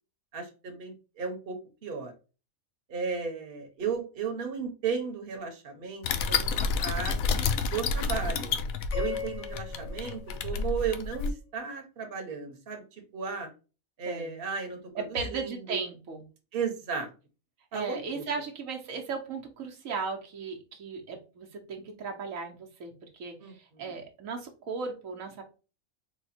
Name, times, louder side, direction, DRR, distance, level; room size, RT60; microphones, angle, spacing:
voice 1, 0.3-2.1 2.9-8.5 8.9-13.5 14.0-15.8 16.5-17.1 17.7-18.3 23.4-23.9, right 5 dB, 45° right, 3 dB, 1.1 m, -35 dB
sound 1, 6.0-11.3, left 5 dB, 85° left, 1.0 m, -30 dB
sound 2, 8.9-11.3, left 7 dB, 60° left, 1.0 m, -40 dB
voice 2, 14.1-14.4 14.9-16.2 17.7-25.4, right 5 dB, 80° right, 2 dB, 1.2 m, -36 dB
4.2 x 2.2 x 4.1 m, 0.32 s
omnidirectional pair, 1.4 m